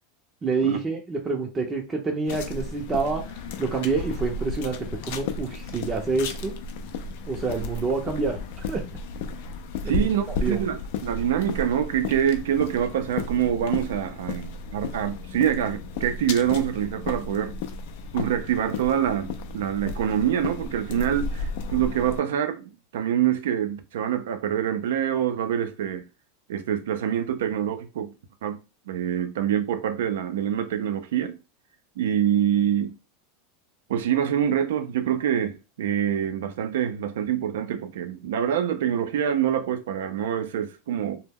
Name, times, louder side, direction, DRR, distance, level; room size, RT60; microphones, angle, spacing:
voice 1, 0.4-6.5 7.3-8.9 9.8-10.1 10.4-10.6, right 4 dB, 25° right, 0.5 m, -27 dB
sound 1, 2.3-22.2, left 3 dB, 65° left, 0.4 m, -34 dB
voice 2, 9.9-17.5 18.1-26.0 26.5-28.1 28.4-28.6 28.9-31.4 32.0-33.0 33.9-41.2, right 9 dB, 80° right, 0.4 m, -25 dB
2.1 x 2.1 x 3.5 m
hypercardioid pair, 105°, 0 cm